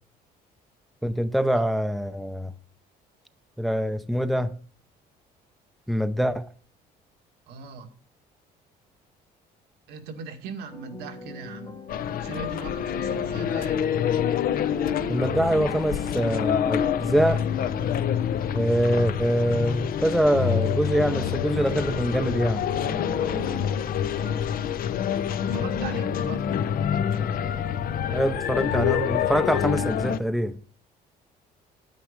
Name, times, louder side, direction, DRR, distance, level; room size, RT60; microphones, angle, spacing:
voice 1, 1.0-2.5 3.6-4.5 5.9-6.5 15.1-17.5 18.5-22.6 28.1-30.6, equal, ahead, 0.7 m, -24 dB
voice 2, 7.5-7.9 9.9-11.8 12.2-13.9 24.2-24.5 25.5-26.6, right 5 dB, 80° right, 2.0 m, -39 dB
sound 1, 10.7-27.5, left 2 dB, 25° left, 1.4 m, -40 dB
sound 2, 11.9-30.2, left 9 dB, 60° left, 0.8 m, -27 dB
9.4 x 9.4 x 5.1 m
cardioid pair, 110°, 17 cm